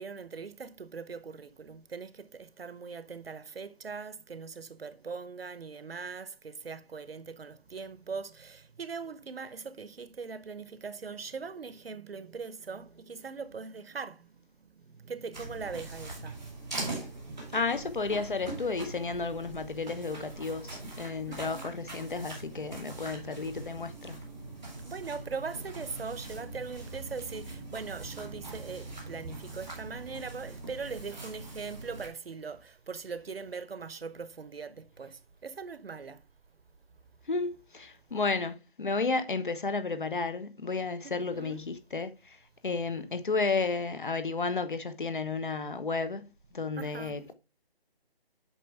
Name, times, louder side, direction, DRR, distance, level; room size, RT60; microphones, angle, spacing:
voice 1, 0.0-17.6 21.2-21.7 24.8-36.2 41.0-41.6 46.8-47.2, right 5 dB, 75° right, 1.0 m, -41 dB
sound 1, 15.3-32.1, right 2 dB, 5° right, 0.9 m, -42 dB
voice 2, 17.5-24.2 37.3-42.4 42.6-46.3 46.5-47.3, left 4 dB, 55° left, 1.3 m, -32 dB
8.5 x 5.8 x 3.4 m
hypercardioid pair, 180°, 30 cm